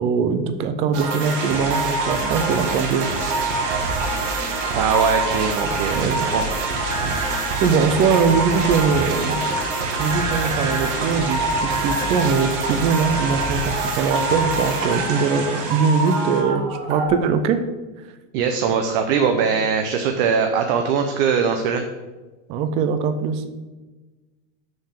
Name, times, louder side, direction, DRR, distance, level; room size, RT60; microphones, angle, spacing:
voice 1, 0.0-3.1 5.9-6.3 7.6-9.4 10.0-17.6 22.5-23.4, right 5 dB, 20° right, 9 dB, 0.3 m, -21 dB
sound 1, 0.9-17.1, right 2 dB, 70° right, 2.1 m, -26 dB
sound 2, 1.2-16.4, right 4 dB, 90° right, 2.7 m, -30 dB
voice 2, 4.7-6.4 18.3-21.8, right 6 dB, 45° right, 5 dB, 0.8 m, -21 dB
6.7 x 6.3 x 6.6 m, 1.2 s
supercardioid pair, 165°, 37 cm